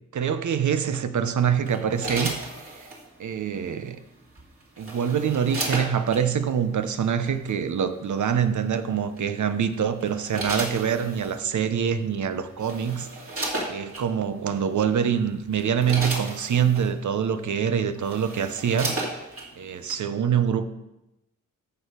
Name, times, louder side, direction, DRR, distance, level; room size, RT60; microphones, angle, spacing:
voice 1, 0.1-2.4 2.8-2.9 3.2-4.0 4.8-13.1 13.7-19.0 19.6-20.6, right 8 dB, 60° right, 10 dB, 0.9 m, -25 dB
sound 1, 1.7-3.0 4.4-6.2 7.3-7.5 9.2-9.5 10.0-11.4 12.2-12.3 12.6-14.1 14.8-15.0 15.4-16.9 17.6-17.7 17.9-19.5 19.9-20.0, right 2 dB, 40° right, 2.7 m, -33 dB
14.0 x 4.7 x 5.1 m, 0.92 s
cardioid pair, 65°, 34 cm